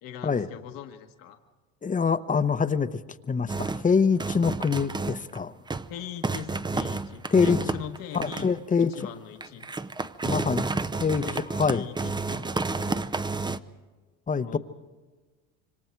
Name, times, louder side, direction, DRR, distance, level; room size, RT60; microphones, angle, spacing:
voice 1, 0.0-1.4 5.9-8.5 8.8-9.7 11.2-11.4 11.7-13.0 14.4-14.6, left 10 dB, 65° left, 5 dB, 1.6 m, -40 dB
voice 2, 1.8-3.0 3.3-5.5 7.3-7.6 8.1-9.0 10.2-10.6 11.0-11.2 11.6-11.8 14.3-14.6, left 5 dB, 20° left, 13 dB, 0.9 m, -24 dB
sound 1, 3.5-3.9 4.2-5.4 5.7-5.9 6.2-8.6 8.9-9.0 9.4-13.6, right 3 dB, 10° right, 0.7 m, -30 dB
26.5 x 25.0 x 4.6 m, 1.3 s
supercardioid pair, 85°, 36 cm